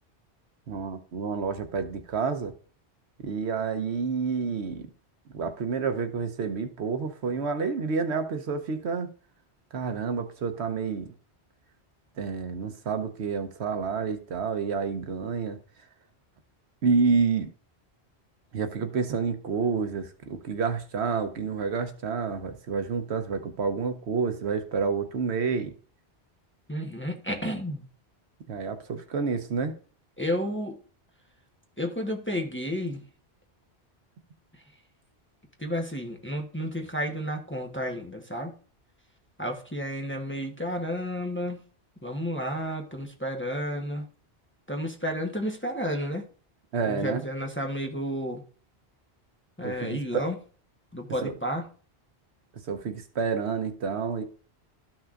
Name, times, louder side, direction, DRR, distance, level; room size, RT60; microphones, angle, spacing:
voice 1, 0.7-2.5 3.2-4.9 5.3-9.1 9.7-11.1 12.2-15.6 16.8-17.5 18.5-25.7 28.5-29.7 46.7-47.3 49.6-50.3 51.2-51.3 52.7-54.2, right 5 dB, 80° right, 1.1 m, -29 dB
voice 2, 26.7-27.8 30.2-30.8 31.8-33.0 35.6-38.5 39.4-41.6 42.0-44.1 44.7-46.2 46.9-48.4 49.6-50.4 50.9-51.6, equal, 10° left, 0.9 m, -31 dB
13.0 x 6.0 x 2.4 m
omnidirectional pair, 1.1 m